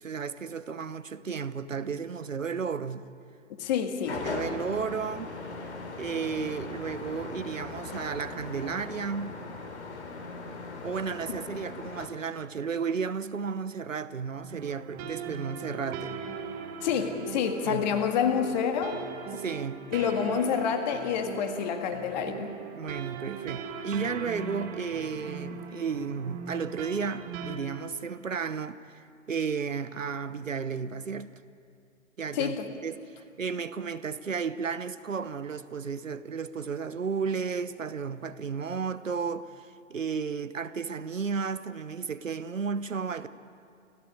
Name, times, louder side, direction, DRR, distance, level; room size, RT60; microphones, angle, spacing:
voice 1, 0.0-3.1 4.2-5.3 6.0-9.4 10.8-16.1 17.6-17.8 19.4-19.8 22.7-31.3 32.2-32.6 32.8-33.0 33.4-43.3, right 5 dB, 75° right, 1.0 m, -33 dB
voice 2, 3.6-4.3 16.8-19.0 19.9-22.6 32.3-32.7, left 7 dB, 35° left, 1.9 m, -28 dB
sound 1, 4.0-12.1, left 3 dB, 55° left, 3.8 m, -39 dB
sound 2, 14.5-27.6, right 6 dB, 20° right, 1.8 m, -40 dB
29.5 x 15.0 x 8.5 m
figure-of-eight pair, 120°, 39 cm